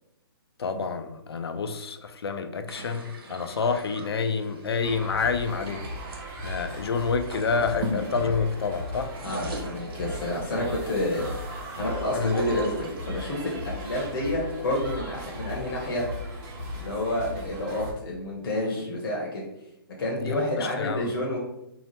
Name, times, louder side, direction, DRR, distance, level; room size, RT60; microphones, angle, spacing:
voice 1, 0.6-5.9 6.4-9.1 10.5-10.7 12.1-12.4 20.3-21.1, left 5 dB, 85° left, 8 dB, 0.4 m, -28 dB
sound 1, 2.7-6.2 7.1-8.8 9.0-10.5 11.1-14.5, right 1 dB, 70° right, 0.8 m, -40 dB
sound 2, 4.8-17.9, equal, 25° right, 0.6 m, -37 dB
voice 2, 9.2-11.3 11.8-16.0 16.7-19.4 20.0-21.4, left 1 dB, 60° left, -2 dB, 0.7 m, -29 dB
2.8 x 2.0 x 3.0 m, 0.87 s
hypercardioid pair, 145°, 13 cm